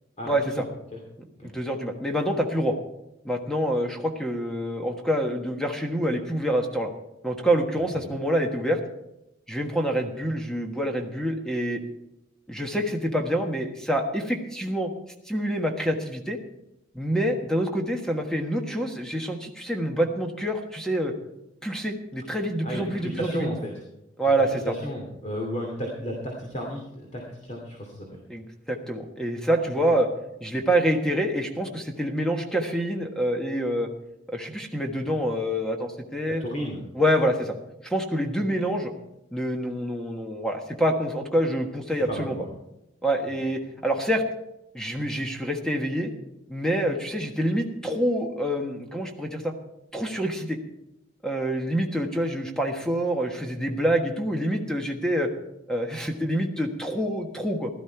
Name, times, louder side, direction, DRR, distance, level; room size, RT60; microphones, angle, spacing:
voice 1, 0.2-0.6 0.9-1.0 1.4-1.5 7.9-8.1 22.6-23.8 24.2-28.2 29.7-29.8 36.3-36.8 39.7-39.8 41.9-42.5 43.2-43.4, equal, 35° left, -1 dB, 2.6 m, -33 dB
voice 2, 1.4-2.7 3.2-6.9 7.2-8.8 9.5-11.8 12.5-14.9 15.3-16.4 16.9-21.1 21.6-23.5 24.2-24.5 28.3-30.1 30.4-33.9 34.3-36.4 36.9-37.6 37.8-38.9 39.3-42.3 43.0-44.2 44.7-46.1 46.5-49.5 49.9-50.6 51.2-55.3 55.7-57.7, equal, 5° left, 3 dB, 1.4 m, -26 dB
16.0 x 12.5 x 4.6 m, 0.88 s
head